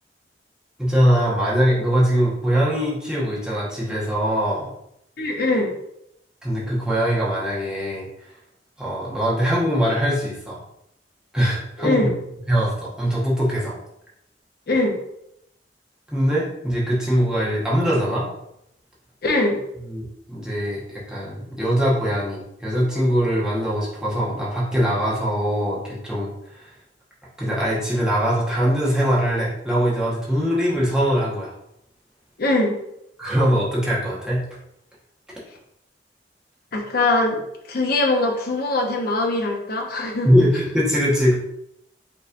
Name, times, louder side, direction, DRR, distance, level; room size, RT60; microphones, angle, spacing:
voice 1, 0.8-4.7 6.4-8.1 8.8-10.6 11.3-12.1 12.5-13.8 16.1-18.3 19.8-26.3 26.5-26.7 27.4-31.5 33.2-34.4 40.2-41.4, equal, 5° right, -7 dB, 1.2 m, -22 dB
voice 2, 5.2-5.7 11.8-12.1 14.7-15.0 19.2-19.6 32.4-32.7 36.7-37.4 37.7-40.3, left 2 dB, 55° left, 2 dB, 0.8 m, -21 dB
5.4 x 3.1 x 2.6 m, 0.78 s
head